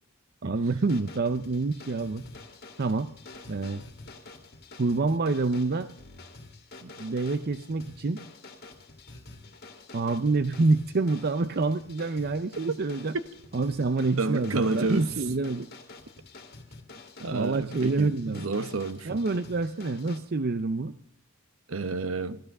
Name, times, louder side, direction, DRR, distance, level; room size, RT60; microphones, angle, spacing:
voice 1, 0.4-2.2 2.8-3.1 3.5-3.8 4.8-5.9 6.8-8.2 9.9-13.2 13.5-15.7 17.3-18.5 19.0-20.9, right 3 dB, 50° right, 0.6 m, -27 dB
sound 1, 0.8-20.2, left 3 dB, 50° left, 2.2 m, -48 dB
voice 2, 14.2-15.1 17.2-19.2 21.7-22.4, right 3 dB, 70° right, 1.0 m, -30 dB
15.0 x 13.0 x 6.6 m
head